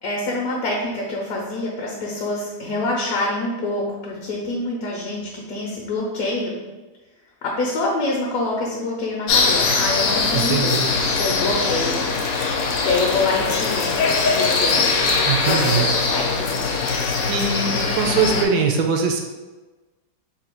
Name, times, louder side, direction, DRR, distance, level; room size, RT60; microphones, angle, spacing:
voice 1, 0.0-6.6 7.4-12.0 12.8-13.9 14.3-14.9 15.4-16.8, left 2 dB, 65° left, -2 dB, 1.0 m, -26 dB
sound 1, 9.3-18.4, left 4 dB, 90° left, 1.3 m, -21 dB
voice 2, 10.3-10.9 15.2-15.9 17.3-19.2, right 5 dB, 75° right, 2 dB, 1.1 m, -21 dB
3.8 x 2.3 x 4.3 m, 1.2 s
omnidirectional pair, 1.9 m